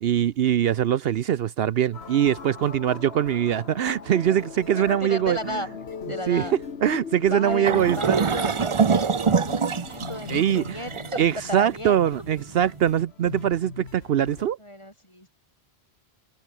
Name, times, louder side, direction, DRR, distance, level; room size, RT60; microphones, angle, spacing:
voice 1, 0.0-5.6 6.3-6.5 6.8-8.2 10.3-10.8 11.2-14.6, right 10 dB, 70° right, 0.8 m, -23 dB
sound 1, 1.9-14.5, left 6 dB, 75° left, 1.6 m, -39 dB
voice 2, 4.9-5.7 6.1-6.6 7.3-12.0 14.6-15.3, equal, 25° left, 8.2 m, -34 dB
sound 2, 7.6-12.8, right 6 dB, 35° right, 0.6 m, -25 dB
omnidirectional pair, 1.1 m